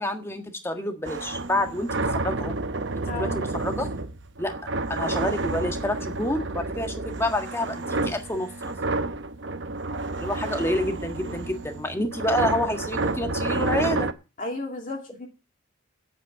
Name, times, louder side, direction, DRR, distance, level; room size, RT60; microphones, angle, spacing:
voice 1, 0.0-2.5 2.9-3.9 4.4-4.5 4.9-8.7 10.2-14.1, left 1 dB, 10° left, 5 dB, 1.5 m, -28 dB
sound 1, 1.0-14.1, right 2 dB, 60° right, 0.8 m, -30 dB
voice 2, 3.1-3.4 9.9-10.2 11.3-11.4 14.4-15.3, left 2 dB, 40° left, 2 dB, 2.4 m, -34 dB
8.7 x 8.3 x 9.1 m, 0.32 s
head